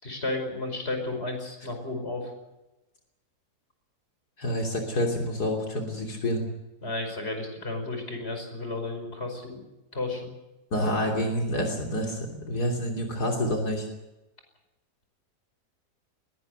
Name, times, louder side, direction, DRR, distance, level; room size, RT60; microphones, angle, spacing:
voice 1, 0.0-2.3 6.8-9.6 9.9-10.3, left 2 dB, 40° left, 5 dB, 5.5 m, -33 dB
voice 2, 4.4-6.4 10.7-13.9, equal, 80° left, 1 dB, 3.7 m, -28 dB
21.5 x 18.5 x 8.0 m, 1.0 s
omnidirectional pair, 1.7 m